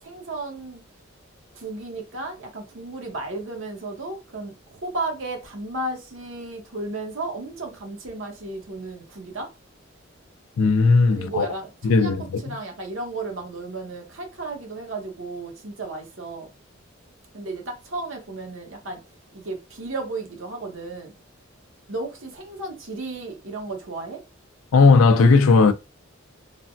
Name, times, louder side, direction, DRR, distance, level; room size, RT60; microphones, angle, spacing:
voice 1, 0.0-0.8 1.5-9.5 11.1-16.5 17.3-19.0 19.3-21.1 21.9-24.2, right 2 dB, 70° right, 1.0 m, -34 dB
voice 2, 10.6-11.5 11.8-12.4 24.7-25.7, left 4 dB, 90° left, 0.4 m, -16 dB
3.2 x 2.2 x 2.6 m
head